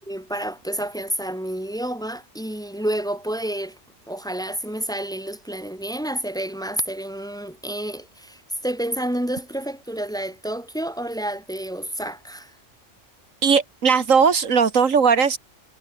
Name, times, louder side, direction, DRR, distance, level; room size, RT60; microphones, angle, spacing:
voice 1, 0.1-3.8 4.1-12.5, right 1 dB, 5° left, 2.3 m, -29 dB
voice 2, 13.4-15.4, right 6 dB, 80° right, 2.0 m, -18 dB
omnidirectional pair, 1.3 m